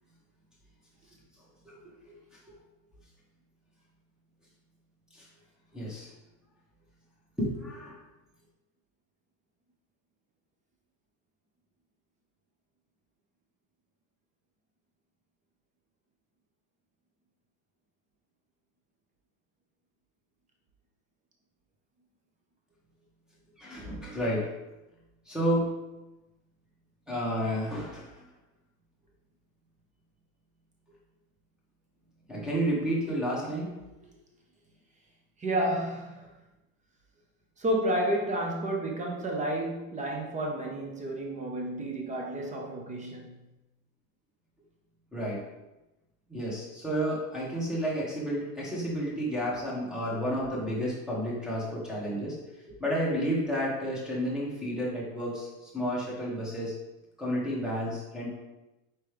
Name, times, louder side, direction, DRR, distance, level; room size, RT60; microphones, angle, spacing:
voice 1, 5.7-6.1 7.4-8.0 23.6-24.5 25.3-25.7 27.1-28.1 32.3-33.7 45.1-45.4 46.3-52.4 52.8-56.7 57.2-58.3, equal, ahead, -5 dB, 1.3 m, -31 dB
voice 2, 35.4-36.3 37.6-43.4, right 1 dB, 15° right, 0 dB, 0.7 m, -31 dB
4.5 x 3.3 x 3.3 m, 1.0 s
supercardioid pair, 120°, 42 cm